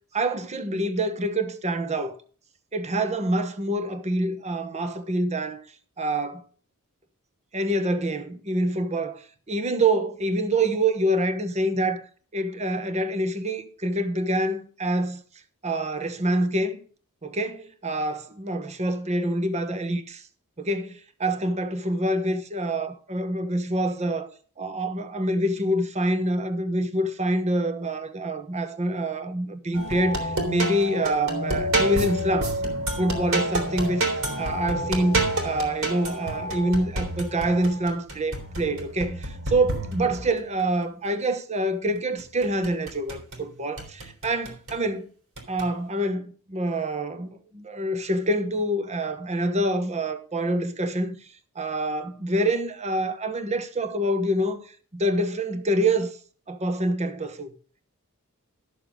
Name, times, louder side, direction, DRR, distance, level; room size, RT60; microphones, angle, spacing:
voice 1, 0.1-2.2 2.7-5.6 6.0-6.4 7.5-9.2 9.5-12.0 12.3-15.2 15.6-16.8 17.2-20.2 20.6-24.3 24.6-32.6 33.0-34.0 34.4-45.1 45.5-51.1 51.5-54.6 54.9-56.1 56.5-57.5, right 1 dB, 30° right, 1.1 m, -26 dB
sound 1, 29.7-40.4 42.2-43.4 43.8-44.8 45.4-45.7, right 1 dB, 65° right, 3.3 m, -29 dB
13.0 x 6.8 x 5.1 m
head